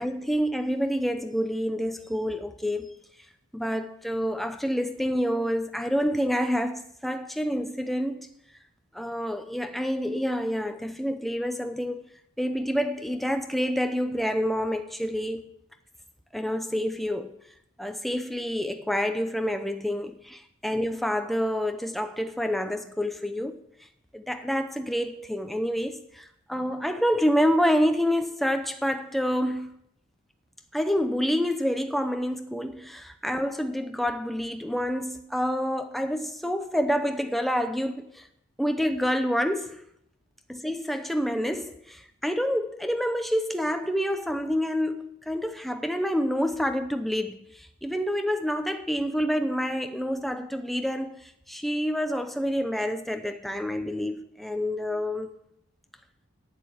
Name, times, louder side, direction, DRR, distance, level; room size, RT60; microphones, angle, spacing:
voice 1, 0.0-3.0 3.5-8.3 8.9-12.0 12.4-15.4 16.3-17.3 17.8-23.6 24.1-29.7 30.7-38.3 38.6-39.8 40.5-55.3, equal, ahead, 0.6 m, -28 dB
9.2 x 7.4 x 7.9 m
head